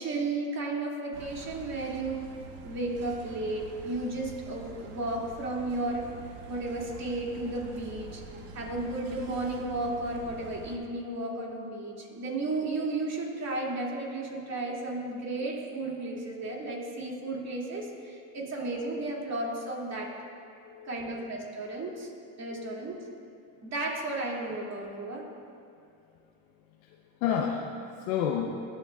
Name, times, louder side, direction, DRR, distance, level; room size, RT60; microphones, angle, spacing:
voice 1, 0.0-2.3 2.6-6.1 6.5-8.2 8.5-20.1 20.8-22.1 22.4-23.0 23.6-25.3, right 2 dB, 40° right, -3 dB, 2.5 m, -33 dB
sound 1, 1.1-10.8, right 3 dB, 85° right, 1.4 m, -46 dB
voice 2, 20.6-21.3 22.5-22.7 26.8-27.7 28.0-28.6, left 8 dB, 80° left, 0 dB, 0.8 m, -32 dB
19.5 x 7.8 x 2.4 m, 2.5 s
supercardioid pair, 95°, 42 cm